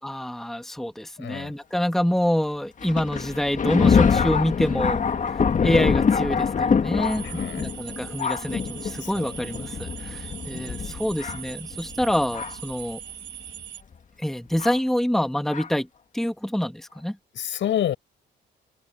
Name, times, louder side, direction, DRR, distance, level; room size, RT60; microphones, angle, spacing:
voice 1, 0.0-13.0 14.2-15.9 16.1-17.2, equal, ahead, 1.5 m, -26 dB
voice 2, 1.2-1.6 7.2-7.6 9.0-9.3 17.3-18.0, left 11 dB, 70° left, 6.9 m, -28 dB
Thunder, 2.8-12.7 13.5-13.6 14.6-14.8 15.5-15.7, left 6 dB, 40° left, 1.8 m, -25 dB
sound 1, 7.0-13.8, right 11 dB, 75° right, 4.5 m, -41 dB
cardioid pair, 90°, 20 cm